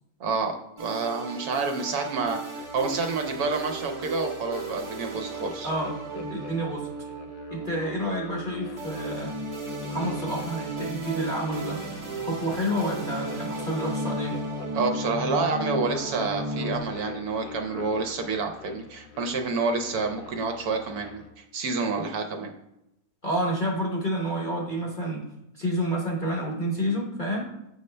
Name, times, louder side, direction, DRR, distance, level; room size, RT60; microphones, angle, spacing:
voice 1, 0.2-5.7 14.7-22.5, right 4 dB, 65° right, 4 dB, 1.1 m, -28 dB
sound 1, 0.8-16.8, right 2 dB, 35° right, 0.4 m, -35 dB
sound 2, 2.6-21.3, left 6 dB, 85° left, 1.3 m, -45 dB
voice 2, 5.6-6.9 7.5-9.4 9.9-11.8 12.2-14.4 23.2-25.3 25.5-27.5, equal, 40° left, -2 dB, 0.8 m, -29 dB
6.8 x 5.3 x 3.2 m, 0.87 s
omnidirectional pair, 1.9 m